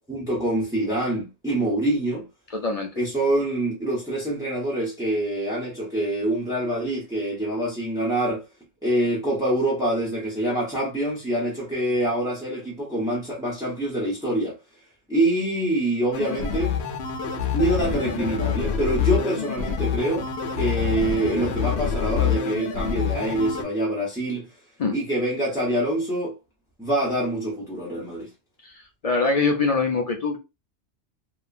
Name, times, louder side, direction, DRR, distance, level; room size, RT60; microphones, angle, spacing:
voice 1, 0.1-2.2 3.0-8.4 8.8-14.6 15.1-16.7 17.5-20.3 20.5-24.5 24.9-26.4 26.8-28.3, right 1 dB, 5° right, 0.6 m, -25 dB
voice 2, 2.5-2.9 24.8-24.9 28.6-28.7 29.0-30.4, left 4 dB, 50° left, 0.4 m, -23 dB
My Arcade, 16.1-23.6, left 7 dB, 70° left, 0.8 m, -26 dB
2.9 x 2.3 x 2.4 m
omnidirectional pair, 1.2 m